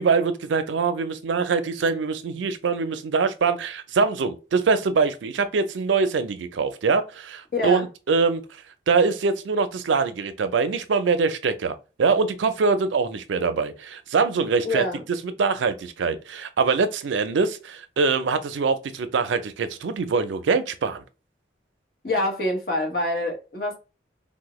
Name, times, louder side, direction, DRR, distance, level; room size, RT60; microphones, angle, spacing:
voice 1, 0.0-8.4 8.9-14.8 15.2-21.0, right 4 dB, 90° right, 0.4 m, -23 dB
voice 2, 7.5-7.8 14.6-15.0 22.0-23.7, left 2 dB, 55° left, 1.0 m, -26 dB
3.4 x 2.1 x 3.0 m
head